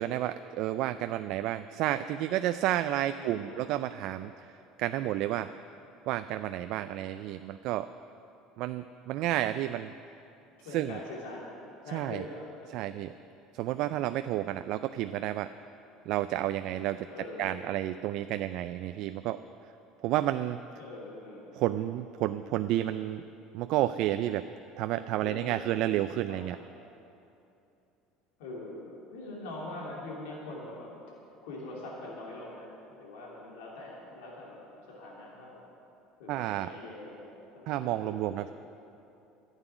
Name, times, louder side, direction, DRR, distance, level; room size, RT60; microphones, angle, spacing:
voice 1, 0.0-4.3 4.8-5.5 6.1-7.9 8.6-9.9 10.7-11.0 11.9-12.2 12.7-13.1 13.5-15.5 16.1-17.1 17.4-19.4 20.0-20.6 21.5-23.2 23.5-24.4 24.8-26.6 36.3-36.7 37.7-38.5, right 13 dB, 65° right, 10 dB, 0.4 m, -31 dB
voice 2, 3.2-3.6 5.4-5.5 10.6-11.5 11.8-12.9 17.0-17.5 20.8-21.5 25.2-25.5 26.3-26.4 28.4-31.0 31.4-35.7 36.2-38.4, left 2 dB, 85° left, -4 dB, 2.8 m, -43 dB
11.5 x 8.1 x 9.9 m, 2.8 s
supercardioid pair, 100°, 0 cm